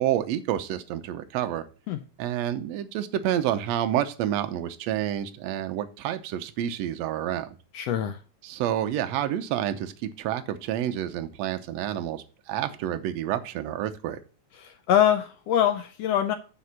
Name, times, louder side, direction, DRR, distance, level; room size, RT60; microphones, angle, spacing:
voice 1, 0.0-1.7 2.2-7.6 8.4-14.2, right 11 dB, 70° right, 8 dB, 1.8 m, -29 dB
voice 2, 7.7-8.2 14.6-16.3, left 10 dB, 75° left, 7 dB, 1.5 m, -24 dB
9.5 x 3.7 x 5.7 m, 0.36 s
omnidirectional pair, 3.4 m